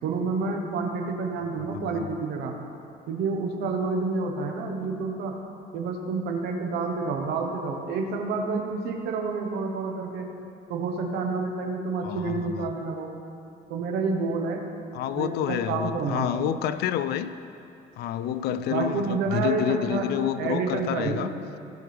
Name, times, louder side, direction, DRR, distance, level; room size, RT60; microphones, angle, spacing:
voice 1, 0.0-2.5 3.1-5.4 5.7-10.3 10.7-13.1 13.7-14.6 15.1-16.5 18.7-20.1 20.4-21.3, right 4 dB, 80° right, 3 dB, 1.2 m, -29 dB
voice 2, 1.6-2.1 12.0-12.7 14.9-17.3 18.0-21.3, left 10 dB, 75° left, 12 dB, 0.4 m, -29 dB
17.0 x 6.1 x 3.5 m, 2.7 s
cardioid pair, 110°, 17 cm